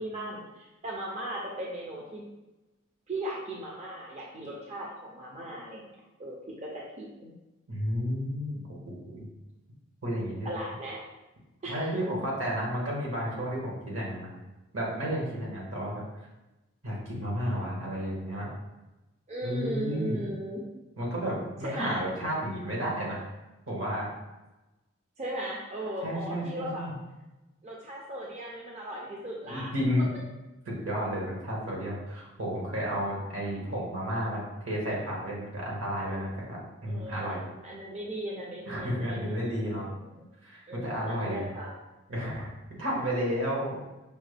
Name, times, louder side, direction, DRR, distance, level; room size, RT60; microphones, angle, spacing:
voice 1, 0.0-2.2 3.1-5.9 6.2-7.3 10.4-11.0 11.6-11.9 19.3-20.6 21.6-22.0 25.2-26.9 27.6-29.7 36.9-40.3 40.7-41.7, right 1 dB, 35° right, -3 dB, 0.5 m, -37 dB
voice 2, 7.7-9.3 10.0-10.5 11.7-14.3 14.7-16.0 16.8-18.5 19.4-20.2 21.0-23.3 23.7-24.1 26.0-27.0 29.5-30.1 30.7-37.4 38.7-39.9 40.4-41.5 42.1-42.5 42.8-43.8, equal, 75° right, -4 dB, 1.3 m, -32 dB
5.2 x 2.1 x 3.3 m, 1.0 s
head